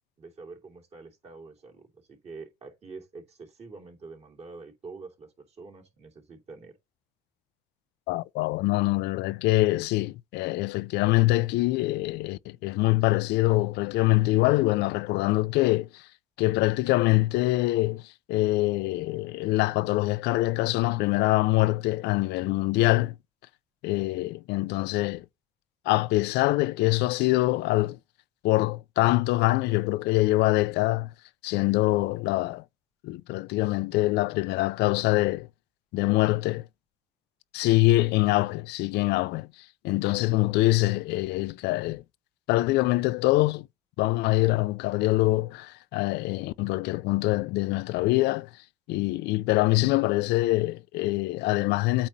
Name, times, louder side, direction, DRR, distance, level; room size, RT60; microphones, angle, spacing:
voice 1, 0.2-6.7, right 4 dB, 40° right, 3.2 m, -46 dB
voice 2, 8.1-16.1 16.4-23.2 23.8-25.3 25.9-28.0 28.4-31.1 31.4-32.6 33.0-35.5 35.9-36.7 37.5-39.5 39.8-42.0 42.5-43.7 44.0-48.5 48.9-52.1, left 19 dB, 85° left, 0.4 m, -24 dB
8.6 x 3.0 x 5.3 m
cardioid pair, 110°, 17 cm